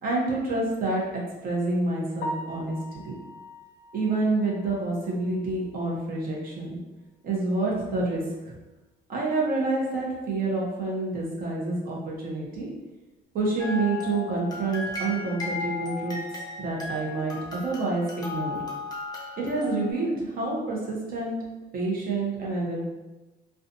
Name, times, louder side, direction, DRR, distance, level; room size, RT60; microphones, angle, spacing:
voice 1, 0.0-3.2 3.9-6.8 7.2-8.5 9.1-12.7 13.3-16.2 16.6-18.6 19.4-21.4 21.7-22.8, right 2 dB, 55° right, -3 dB, 0.8 m, -28 dB
Piano, 2.2-6.2 6.5-6.6 7.1-7.2 7.6-7.7 10.8-10.9 19.4-19.6, equal, 75° left, 0.4 m, -41 dB
sound 1, 13.6-19.9, left 3 dB, 20° left, 0.6 m, -35 dB
2.5 x 2.3 x 2.6 m, 1.1 s
cardioid pair, 110°, 18 cm